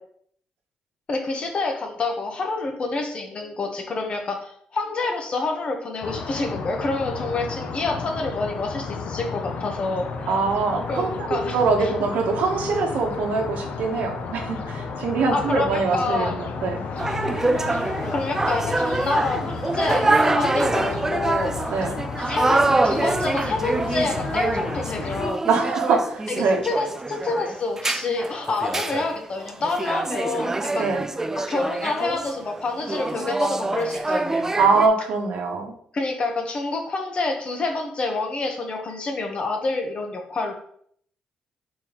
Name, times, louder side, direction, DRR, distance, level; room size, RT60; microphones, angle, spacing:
voice 1, 1.1-10.3 10.9-11.9 15.3-16.4 18.1-21.5 21.8-21.9 22.2-25.4 26.3-30.9 31.3-34.5 35.9-40.5, left 3 dB, 45° left, 3 dB, 1.0 m, -27 dB
sound 1, 6.0-25.3, left 5 dB, 65° left, 0.6 m, -33 dB
voice 2, 10.3-16.8 21.7-22.0 25.5-26.6 30.8-31.1 34.6-35.7, right 4 dB, 80° right, 2 dB, 0.9 m, -23 dB
sound 2, 17.0-34.9, right 2 dB, 15° right, 0.3 m, -25 dB
4.5 x 3.8 x 2.9 m, 0.64 s
cardioid pair, 85°, 3 cm